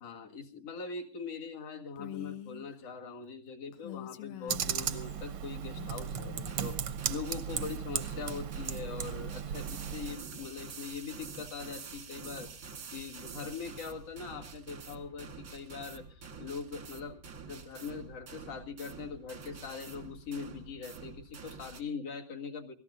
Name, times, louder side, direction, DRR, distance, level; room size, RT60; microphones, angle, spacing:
voice 1, 0.0-12.5 12.9-22.7, left 5 dB, 50° left, 2 dB, 2.7 m, -42 dB
Female speech woman speaking, 2.0-2.7 3.7-5.2 5.7-6.6, left 12 dB, 70° left, 2.2 m, -45 dB
Computer keyboard, 4.5-10.1, right 9 dB, 75° right, 1.3 m, -36 dB
sound 1, 6.5-21.8, right 5 dB, 45° right, 1.1 m, -47 dB
27.0 x 18.0 x 2.6 m, 0.37 s
omnidirectional pair, 3.8 m